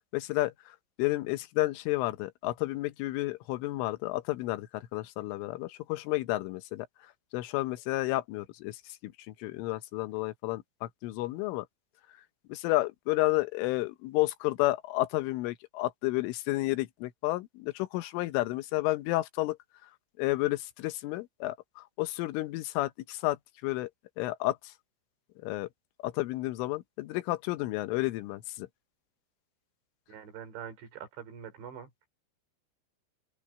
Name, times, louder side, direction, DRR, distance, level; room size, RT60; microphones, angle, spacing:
voice 1, 0.1-0.5 1.0-6.9 7.3-11.7 12.5-19.6 20.2-23.4 23.6-23.9 24.2-24.7 25.4-25.7 26.0-28.7, left 19 dB, 85° left, 3.6 m, -31 dB
voice 2, 30.1-31.9, right 8 dB, 70° right, 6.1 m, -44 dB
open air
omnidirectional pair, 5.5 m